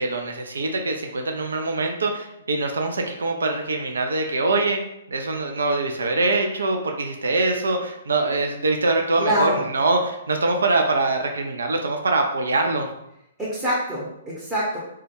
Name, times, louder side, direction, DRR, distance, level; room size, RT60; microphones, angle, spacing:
voice 1, 0.0-4.8 5.1-12.9, right 2 dB, 70° right, 3 dB, 0.3 m, -23 dB
voice 2, 9.2-9.7 13.4-14.8, equal, 10° right, -7 dB, 0.7 m, -25 dB
2.2 x 2.1 x 2.9 m, 0.80 s
figure-of-eight pair, 120°, 0 cm